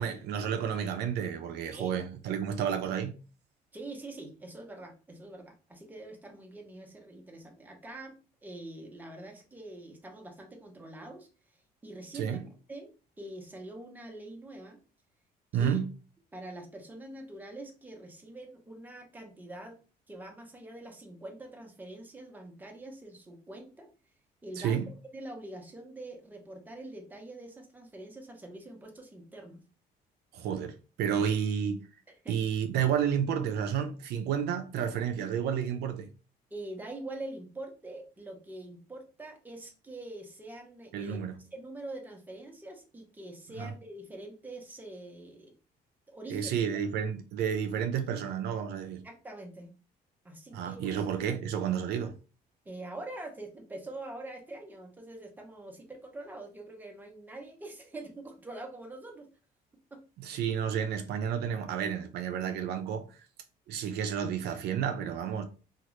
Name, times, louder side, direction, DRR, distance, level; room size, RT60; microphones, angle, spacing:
voice 1, 0.0-3.2 12.1-12.4 15.5-15.9 24.6-24.9 30.3-31.8 32.3-36.1 40.9-41.4 43.6-43.7 46.3-49.0 50.5-52.1 60.2-63.3 63.7-65.4, right 8 dB, 75° right, 0.5 m, -31 dB
voice 2, 3.7-11.3 11.8-12.4 12.7-12.9 13.2-14.8 15.5-15.8 16.3-19.8 20.1-23.9 24.4-29.6 32.1-32.4 36.5-41.2 41.5-45.5 46.1-46.6 48.8-49.7 50.2-51.0 52.6-59.3 59.9-60.0, right 1 dB, 10° right, 0.8 m, -44 dB
2.9 x 2.4 x 3.0 m
cardioid pair, 110°, 17 cm